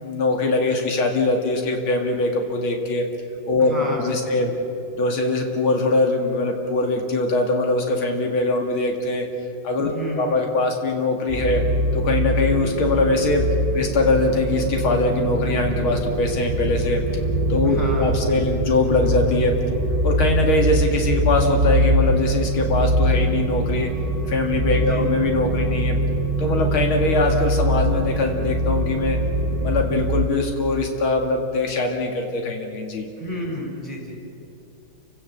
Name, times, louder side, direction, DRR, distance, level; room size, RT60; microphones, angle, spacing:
voice 1, 0.0-3.1 3.5-4.5 4.9-9.3 9.6-9.9 10.2-11.6 11.9-13.5 13.7-17.0 17.5-19.6 20.0-23.9 24.3-26.0 26.4-29.2 29.6-33.1, left 2 dB, 85° left, 2 dB, 2.8 m, -22 dB
voice 2, 3.6-4.5 9.9-10.4 17.6-18.7 24.7-25.1 33.2-34.2, equal, 15° left, -1 dB, 5.3 m, -31 dB
sound 1, 11.3-30.3, right 1 dB, 25° right, 1.7 m, -23 dB
29.0 x 17.5 x 7.2 m, 2.7 s
omnidirectional pair, 2.2 m